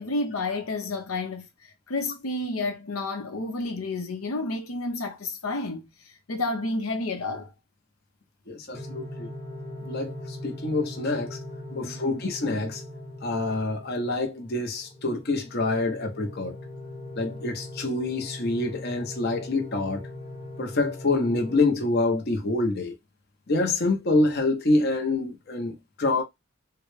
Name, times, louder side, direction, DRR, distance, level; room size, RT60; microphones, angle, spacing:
voice 1, 0.0-7.5 11.7-12.2, left 2 dB, 90° left, 0.8 m, -31 dB
voice 2, 8.5-9.3 9.8-11.4 11.7-12.8 13.2-16.6 17.2-20.1 20.6-22.9 23.5-26.2, left 2 dB, 50° left, 0.8 m, -26 dB
sound 1, 8.7-21.6, left 1 dB, 20° left, 0.9 m, -40 dB
3.7 x 2.2 x 3.1 m
head